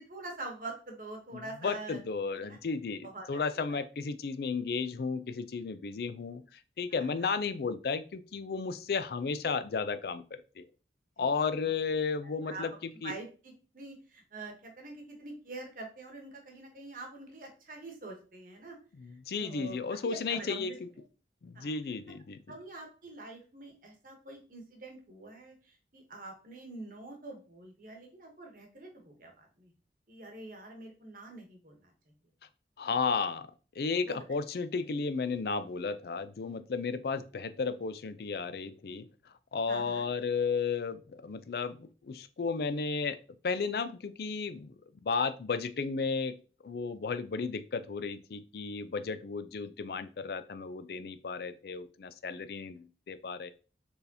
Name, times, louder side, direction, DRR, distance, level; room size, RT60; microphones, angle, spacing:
voice 1, 0.0-2.0 2.5-2.6 3.0-3.8 6.9-7.3 11.2-11.5 12.2-12.6 13.0-18.8 19.4-19.8 20.0-20.8 21.5-21.7 22.5-29.7 30.1-31.9 34.1-34.2 39.7-40.1, right 2 dB, 50° right, 2 dB, 1.0 m, -45 dB
voice 2, 1.3-10.7 11.2-13.1 19.0-20.9 21.4-22.4 32.8-33.5 33.8-39.1 39.5-43.2 43.4-44.7 45.0-46.4 46.6-53.5, left 5 dB, 60° left, 12 dB, 0.4 m, -34 dB
4.4 x 3.4 x 2.8 m, 0.36 s
head